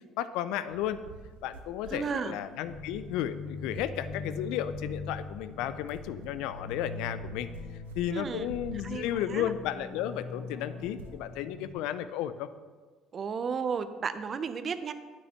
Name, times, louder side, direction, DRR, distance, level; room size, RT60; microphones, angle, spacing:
voice 1, 0.2-1.0 1.4-7.5 8.0-12.5, left 11 dB, 70° left, 13 dB, 0.3 m, -33 dB
sound 1, 0.7-11.3, right 3 dB, 85° right, 0.6 m, -49 dB
voice 2, 1.9-2.4 8.1-8.5 8.8-9.5 13.1-14.9, right 6 dB, 45° right, 11 dB, 0.5 m, -33 dB
sound 2, 2.6-11.7, left 3 dB, 50° left, 2.4 m, -42 dB
9.2 x 8.2 x 2.9 m, 1.4 s
hypercardioid pair, 60°, 0 cm